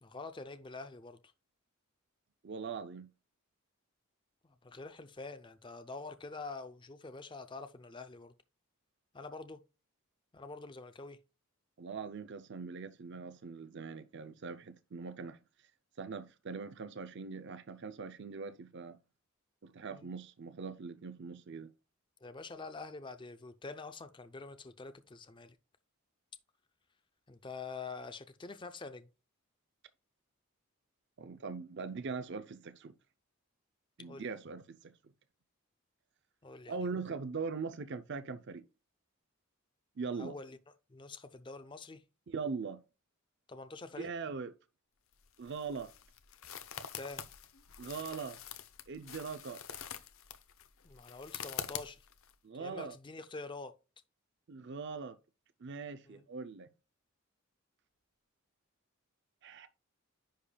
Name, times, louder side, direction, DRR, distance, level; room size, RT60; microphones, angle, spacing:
voice 1, 0.0-1.2 4.4-8.3 9.1-9.6 10.3-11.2 19.9-20.1 22.2-25.6 27.3-29.1 34.0-34.3 36.4-36.8 40.2-40.6 40.9-42.0 43.5-44.1 46.9-47.2 50.8-52.0 52.6-53.7 56.1-56.2, left 3 dB, 20° left, 0.5 m, -46 dB
voice 2, 2.4-3.1 11.8-15.4 16.0-19.0 19.6-21.7 31.2-32.9 34.0-34.9 36.7-38.6 40.0-40.3 42.3-42.8 44.0-44.5 45.4-45.9 47.8-48.4 48.9-49.6 52.4-53.0 54.5-55.2 55.6-56.7 59.4-59.7, right 5 dB, 55° right, 0.5 m, -41 dB
sound 1, 45.1-52.3, left 8 dB, 70° left, 0.8 m, -46 dB
10.0 x 5.1 x 2.2 m
head